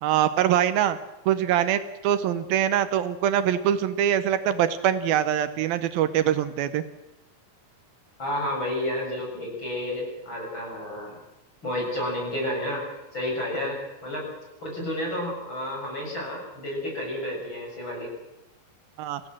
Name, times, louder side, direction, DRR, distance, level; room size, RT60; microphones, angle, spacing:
voice 1, 0.0-1.0 1.3-6.8 19.0-19.2, right 10 dB, 80° right, 11 dB, 2.7 m, -23 dB
voice 2, 8.2-11.2 11.6-12.8 13.1-14.2 14.6-18.1, left 1 dB, 30° left, -1 dB, 8.0 m, -31 dB
26.5 x 16.5 x 7.6 m, 0.95 s
omnidirectional pair, 4.3 m